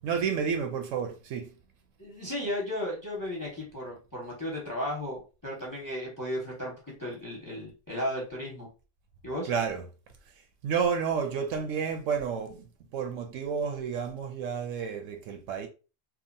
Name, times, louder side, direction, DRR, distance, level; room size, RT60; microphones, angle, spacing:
voice 1, 0.0-1.5 9.4-9.8 10.6-12.7 12.9-15.7, right 6 dB, 85° right, 1.0 m, -30 dB
voice 2, 2.0-6.7 7.0-8.7 9.2-9.5, left 1 dB, 20° left, 0.8 m, -34 dB
2.9 x 2.4 x 2.5 m
omnidirectional pair, 1.3 m